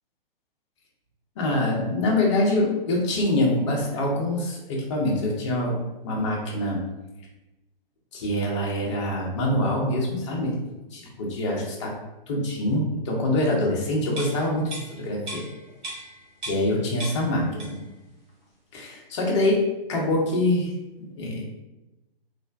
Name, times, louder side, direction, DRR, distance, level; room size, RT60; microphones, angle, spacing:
voice 1, 1.4-6.8 8.1-10.5 10.9-11.9 12.3-15.4 16.5-17.8 18.7-20.7 21.0-21.5, left 1 dB, 30° left, -2 dB, 0.7 m, -25 dB
sound 1, 14.2-16.7 17.0-18.0 18.3-18.4, right 1 dB, 50° right, 1.2 m, -38 dB
3.2 x 2.1 x 2.5 m, 1.0 s
figure-of-eight pair, 125°, 29 cm